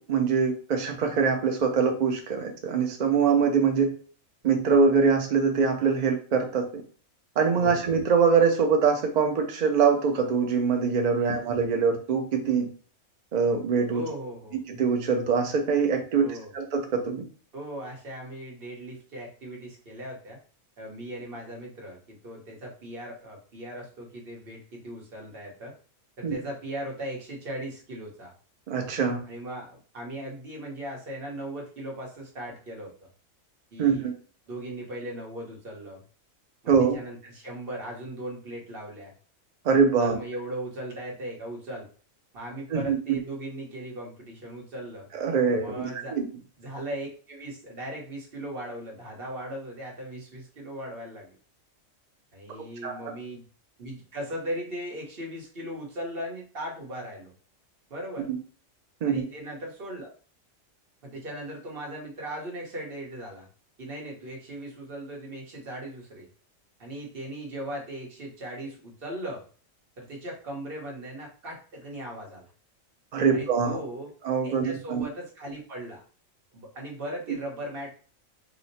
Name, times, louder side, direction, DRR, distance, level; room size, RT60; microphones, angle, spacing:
voice 1, 0.0-3.9 4.4-6.6 7.4-12.7 13.3-14.0 14.7-17.2 26.2-26.4 28.7-29.2 33.8-34.1 36.7-37.0 39.6-40.2 42.7-43.2 45.1-46.3 52.8-53.0 58.3-58.4 59.0-59.2 73.1-73.8 74.2-75.0, right 5 dB, 75° right, 4 dB, 0.4 m, -23 dB
voice 2, 13.9-14.6 16.2-16.5 17.5-20.4 20.8-25.7 26.2-28.3 29.2-32.9 33.7-34.1 34.5-36.0 36.6-39.1 40.0-41.9 42.3-45.1 45.6-46.2 46.6-51.3 52.3-53.4 53.8-57.3 57.9-58.3 59.0-60.1 61.0-63.5 63.8-66.3 66.8-69.4 70.0-72.5 73.3-74.1 74.4-76.0 76.5-77.9, right 1 dB, 50° right, -1 dB, 1.1 m, -38 dB
2.9 x 2.1 x 4.0 m, 0.41 s
omnidirectional pair, 1.4 m